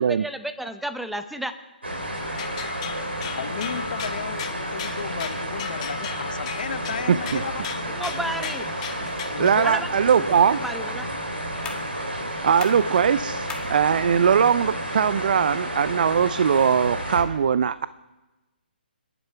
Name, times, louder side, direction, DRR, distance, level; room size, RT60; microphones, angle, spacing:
voice 1, 0.0-1.5 7.9-8.7 9.6-11.1, right 1 dB, ahead, 10 dB, 0.8 m, -32 dB
sound 1, 1.8-17.2, right 1 dB, 90° right, 3.8 m, -31 dB
sound 2, 2.2-9.6, left 9 dB, 35° left, 1.4 m, -37 dB
voice 2, 3.3-7.7 9.3-9.7 10.0-10.2, left 7 dB, 55° left, 15 dB, 0.7 m, -34 dB
voice 3, 7.1-7.4 9.4-10.6 12.1-17.9, right 7 dB, 55° right, 16 dB, 0.4 m, -21 dB
sound 3, 10.1-17.1, left 6 dB, 15° left, 1.6 m, -45 dB
27.5 x 11.0 x 4.6 m, 1.2 s
figure-of-eight pair, 135°, 6 cm